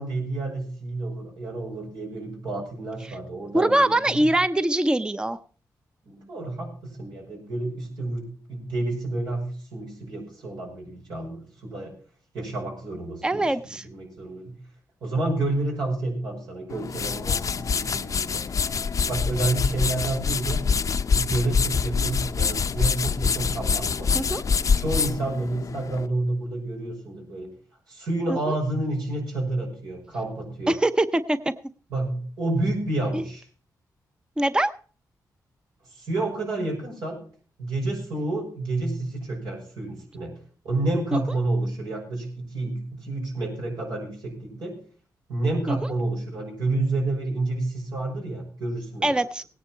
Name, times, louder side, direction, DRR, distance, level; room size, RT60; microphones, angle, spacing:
voice 1, 0.0-4.3 6.0-11.9 12.3-14.6 15.0-18.4 19.1-20.6 21.1-24.2 24.8-27.5 27.9-30.8 31.9-33.4 35.9-37.2 37.6-40.3 40.6-44.7 45.3-49.1, right 2 dB, 85° right, -1 dB, 6.1 m, -29 dB
voice 2, 3.5-5.4 13.2-13.8 24.1-24.4 28.3-28.6 30.7-31.4 33.1-33.2 34.4-34.7 41.1-41.2 45.7-45.8 49.0-49.4, right 1 dB, 10° right, 12 dB, 0.6 m, -23 dB
sound 1, 16.7-26.1, left 5 dB, 50° left, 0.6 m, -25 dB
17.5 x 10.0 x 4.4 m, 0.42 s
cardioid pair, 75°, 7 cm